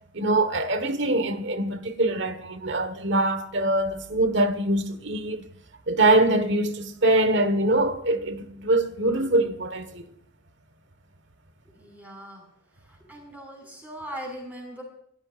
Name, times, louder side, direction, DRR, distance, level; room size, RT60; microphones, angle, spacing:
voice 1, 0.1-5.5 5.9-10.1, right 2 dB, 60° right, 1.5 m, -23 dB
voice 2, 11.7-12.4 12.9-14.8, equal, 10° right, 5.7 m, -40 dB
27.5 x 13.0 x 2.5 m
head